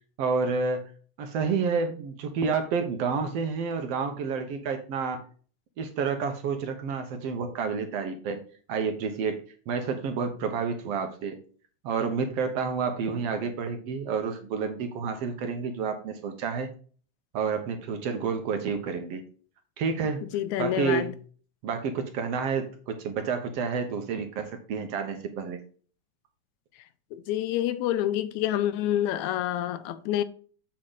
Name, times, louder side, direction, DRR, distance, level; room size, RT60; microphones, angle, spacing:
voice 1, 0.2-0.9 1.2-5.2 5.8-8.4 8.7-11.4 11.8-16.7 17.3-19.2 19.8-20.2 20.6-21.1 21.6-25.6, right 5 dB, 65° right, 1.8 m, -29 dB
voice 2, 20.3-21.1 27.1-30.2, left 12 dB, 80° left, 1.9 m, -27 dB
7.5 x 6.6 x 3.9 m
omnidirectional pair, 3.4 m